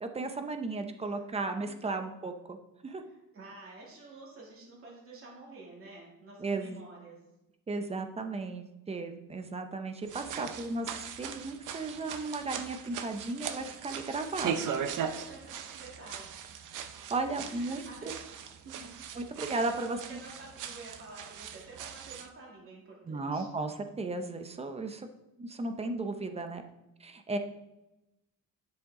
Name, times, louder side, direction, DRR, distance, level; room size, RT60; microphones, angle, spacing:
voice 1, 0.0-2.6 2.8-3.0 6.4-6.8 7.7-14.6 17.1-17.8 19.2-20.2 23.1-25.1 25.4-26.6 27.0-27.4, right 3 dB, 20° right, 7 dB, 0.6 m, -35 dB
voice 2, 3.0-7.2 14.3-14.8 15.1-16.5 17.3-18.2 18.6-18.9 19.3-23.5, right 3 dB, 40° right, -4 dB, 2.6 m, -50 dB
sound 1, 10.0-22.3, right 8 dB, 60° right, 0.7 m, -39 dB
10.0 x 6.3 x 3.7 m, 0.94 s
cardioid pair, 160°, 34 cm